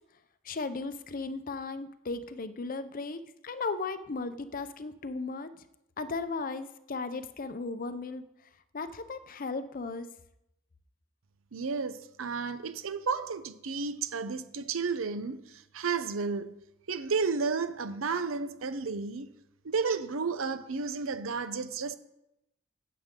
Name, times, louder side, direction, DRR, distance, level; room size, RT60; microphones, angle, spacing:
voice 1, 0.4-5.5 6.0-8.2 8.7-10.1, left 3 dB, 45° left, 0.6 m, -36 dB
voice 2, 11.5-16.6 16.9-19.3 19.6-22.0, right 5 dB, 85° right, 0.7 m, -32 dB
15.0 x 7.8 x 3.8 m
head